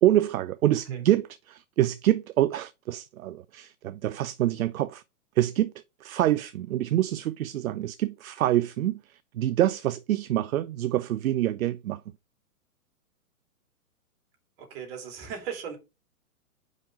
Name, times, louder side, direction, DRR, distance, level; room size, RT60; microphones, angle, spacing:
voice 1, 0.0-5.0 5.4-5.7 6.0-9.0 9.3-12.0, right 13 dB, 65° right, 0.6 m, -26 dB
voice 2, 14.6-15.8, right 7 dB, 40° right, 2.8 m, -37 dB
5.3 x 5.3 x 4.9 m
hypercardioid pair, 130°, 45 cm